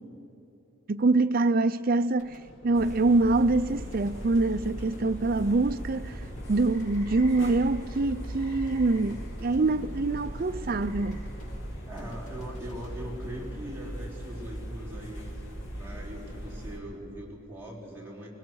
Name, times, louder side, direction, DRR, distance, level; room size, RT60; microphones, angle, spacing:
voice 1, 0.9-2.4 2.6-6.2 6.5-11.3, right 3 dB, 40° right, 0.5 m, -25 dB
sound 1, 2.2-14.4, equal, 80° left, 7.1 m, -48 dB
sound 2, 2.7-16.8, right 1 dB, 60° left, 2.6 m, -39 dB
sound 3, 6.4-11.6, equal, 15° left, 4.6 m, -54 dB
voice 2, 11.9-15.3 15.7-18.3, equal, 10° right, 3.8 m, -41 dB
25.0 x 20.5 x 6.4 m
head